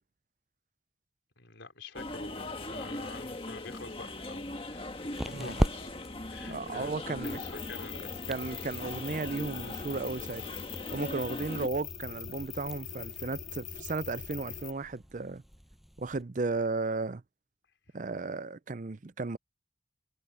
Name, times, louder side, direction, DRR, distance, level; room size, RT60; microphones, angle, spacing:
voice 1, 1.4-4.9 5.3-5.9 6.3-8.3 17.9-18.0, left 3 dB, 90° left, 4.1 m, -47 dB
sound 1, 1.9-11.7, left 2 dB, 30° left, 1.7 m, -40 dB
sound 2, 3.8-16.2, equal, ahead, 6.3 m, -40 dB
voice 2, 6.4-7.4 8.3-10.4 10.9-15.4 16.0-17.2 17.9-19.4, right 3 dB, 45° right, 0.5 m, -34 dB
sound 3, 7.2-14.7, left 8 dB, 50° left, 3.5 m, -42 dB
head